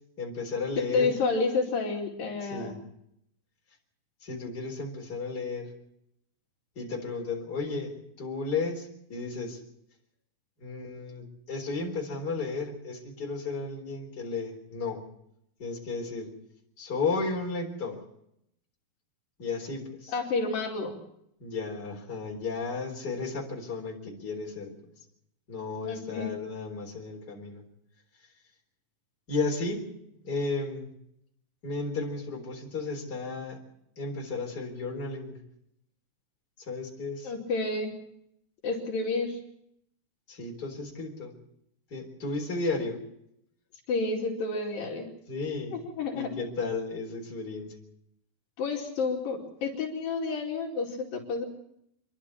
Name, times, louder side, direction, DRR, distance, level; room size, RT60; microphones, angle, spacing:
voice 1, 0.2-1.1 2.4-2.8 4.2-5.7 6.8-9.6 10.6-15.0 15.6-16.3 16.8-18.0 19.4-20.1 21.4-24.7 25.5-27.6 29.3-29.9 30.2-30.9 31.6-33.6 34.0-35.4 36.6-37.3 40.3-41.3 41.9-43.0 45.3-45.8 46.1-47.7, left 3 dB, 25° left, 0 dB, 4.3 m, -34 dB
voice 2, 0.9-2.8 20.1-20.9 25.8-26.3 37.2-37.9 38.6-39.4 43.9-45.1 45.7-46.3 48.6-51.5, left 3 dB, 70° left, 0 dB, 4.1 m, -30 dB
27.5 x 11.5 x 8.4 m, 0.77 s
omnidirectional pair, 4.2 m